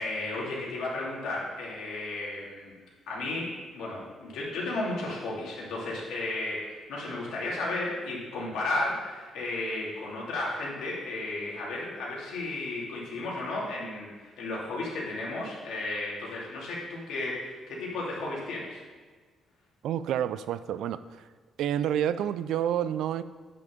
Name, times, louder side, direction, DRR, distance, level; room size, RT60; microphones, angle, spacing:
voice 1, 0.0-2.7 3.1-18.8, left 2 dB, 75° left, -4 dB, 2.8 m, -34 dB
voice 2, 19.8-21.3 21.6-23.2, right 10 dB, 70° right, 14 dB, 0.4 m, -29 dB
9.2 x 6.0 x 5.1 m, 1.4 s
cardioid pair, 175°, 0 cm